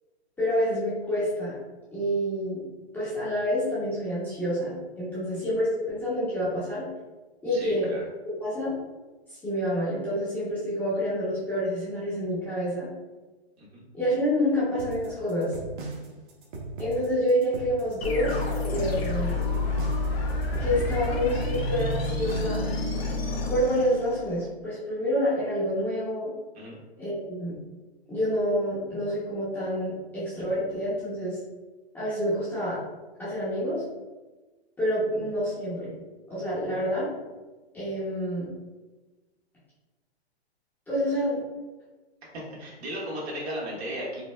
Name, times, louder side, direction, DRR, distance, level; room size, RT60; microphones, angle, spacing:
voice 1, 0.4-1.6 1.9-2.6 2.9-6.9 7.4-7.9 8.4-8.8 9.4-12.9 13.9-15.5 16.8-18.3 18.7-19.4 20.6-22.7 23.5-26.3 27.0-27.6 28.1-31.4 31.9-32.8 33.2-33.8 34.8-35.9 36.3-37.1 37.7-38.5 40.9-41.4, equal, 5° left, -12 dB, 0.6 m, -28 dB
voice 2, 7.5-8.1 13.6-13.8 26.5-26.8 42.3-44.2, equal, 75° right, -5 dB, 1.4 m, -35 dB
sound 1, 14.8-22.7, right 2 dB, 50° right, 0.8 m, -38 dB
sound 2, 18.0-24.5, left 2 dB, 65° left, 0.7 m, -29 dB
4.1 x 2.1 x 2.2 m, 1.2 s
hypercardioid pair, 145°, 32 cm